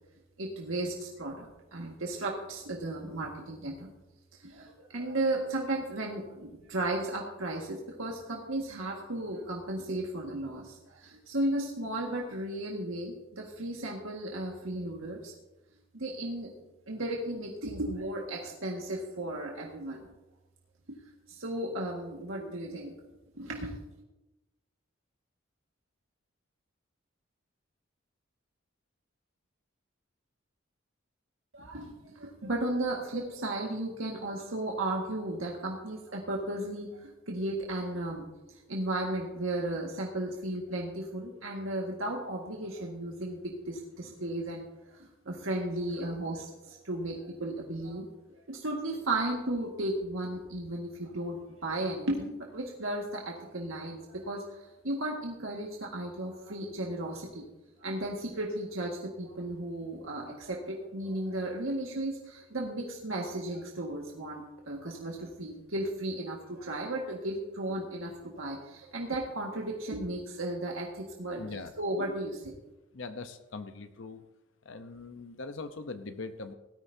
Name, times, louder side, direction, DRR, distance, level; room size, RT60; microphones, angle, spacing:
voice 1, 0.4-3.9 4.4-15.3 15.9-16.5 16.9-20.1 21.3-22.9 23.4-23.8 31.5-38.2 38.5-48.1 48.5-57.4 57.8-72.5, right 1 dB, 80° right, -2 dB, 1.8 m, -35 dB
voice 2, 71.4-71.7 72.9-74.2 74.6-76.5, left 3 dB, 65° left, 8 dB, 0.9 m, -41 dB
18.0 x 13.5 x 2.8 m, 1.0 s
head